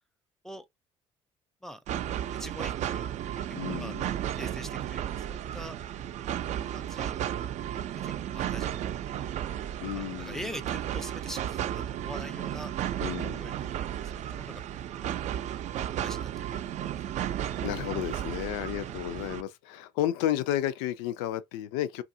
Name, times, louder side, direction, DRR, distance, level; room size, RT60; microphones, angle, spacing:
sound 1, 1.9-19.4, right 10 dB, 60° right, 0.4 m, -34 dB
voice 1, 2.3-3.1 3.8-4.0 4.3-5.8 6.7-7.2 8.0-8.8 9.9-12.7 13.4-15.0 16.0-16.7, equal, 5° left, 0.5 m, -43 dB
voice 2, 3.5-4.1 9.8-10.6 13.0-13.5 17.6-22.0, left 12 dB, 85° left, 0.4 m, -32 dB
2.6 x 2.4 x 2.7 m
hypercardioid pair, 65°, 14 cm